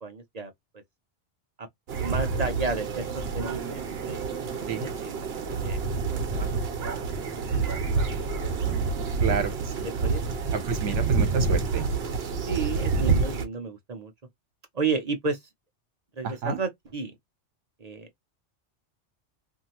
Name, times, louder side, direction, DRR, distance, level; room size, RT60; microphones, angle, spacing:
voice 1, 0.0-0.5 1.6-1.7 2.0-4.2 4.6-6.5 7.0-7.8 10.0-10.2 12.5-14.1 14.7-15.4 16.2-17.1 17.8-18.1, right 4 dB, 40° right, 0.6 m, -32 dB
sound 1, 1.9-13.4, right 4 dB, 60° right, 0.9 m, -28 dB
voice 2, 9.2-9.9 10.5-11.9 16.2-16.6, right 6 dB, 75° right, 1.2 m, -30 dB
2.6 x 2.6 x 2.8 m
omnidirectional pair, 1.3 m